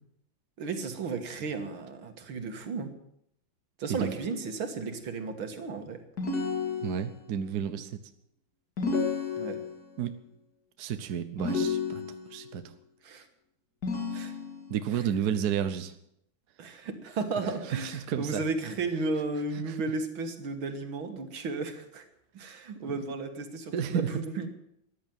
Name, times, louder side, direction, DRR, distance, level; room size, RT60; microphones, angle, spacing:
voice 1, 0.6-2.9 3.8-6.0 9.4-9.6 13.0-13.3 14.1-14.4 14.9-15.0 16.6-22.1 22.3-24.5, right 3 dB, 80° right, 7 dB, 2.5 m, -34 dB
sound 1, 6.2-7.3 8.8-9.9 11.4-12.4 13.8-14.8, left 5 dB, 50° left, 2.9 m, -31 dB
voice 2, 6.8-8.0 10.0-10.2 10.8-12.0 12.3-12.6 14.7-15.9 17.8-18.4 19.7-19.8 22.8-23.0 23.7-24.1, right 8 dB, 60° right, 10 dB, 1.3 m, -31 dB
14.0 x 10.5 x 9.3 m, 0.76 s
omnidirectional pair, 2.2 m